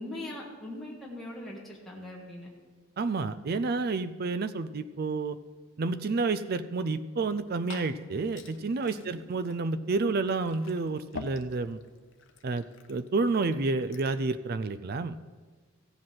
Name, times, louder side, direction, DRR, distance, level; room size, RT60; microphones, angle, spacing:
voice 1, 0.0-2.5 8.9-9.2, left 1 dB, ahead, -5 dB, 1.7 m, -41 dB
voice 2, 3.0-5.4 5.8-11.8 12.4-15.2, right 3 dB, 50° right, 12 dB, 0.4 m, -30 dB
Liquid, 7.2-14.3, left 4 dB, 60° left, 0.8 m, -49 dB
15.5 x 7.6 x 5.9 m, 1.4 s
head